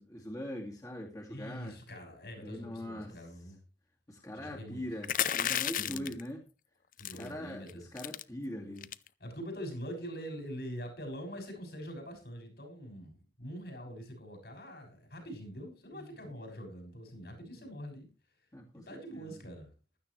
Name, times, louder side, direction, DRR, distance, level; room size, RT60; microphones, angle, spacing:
voice 1, 0.0-1.8 2.4-3.3 4.1-6.4 7.0-8.9 13.8-13.9 15.9-16.4 18.5-19.4, equal, 20° left, -1 dB, 2.1 m, -42 dB
voice 2, 1.3-3.6 4.3-4.8 5.8-6.1 7.0-7.8 9.2-18.1 18.7-19.7, equal, 65° left, 3 dB, 6.7 m, -44 dB
sound 1, 5.0-6.2 7.0-7.3 7.7-7.8 8.0-8.2 8.8-9.1, left 10 dB, 50° left, 0.5 m, -32 dB
15.5 x 13.0 x 3.3 m, 0.32 s
head